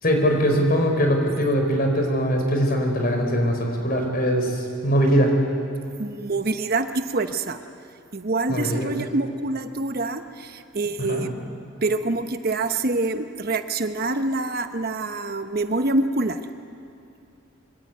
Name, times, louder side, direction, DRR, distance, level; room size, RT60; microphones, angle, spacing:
voice 1, 0.0-5.3 8.5-8.9 11.0-11.3, equal, 45° left, 3 dB, 4.5 m, -21 dB
voice 2, 6.0-7.6 8.1-11.3 11.8-16.4, right 2 dB, 45° right, 8 dB, 1.0 m, -26 dB
24.5 x 24.0 x 9.3 m, 2.5 s
head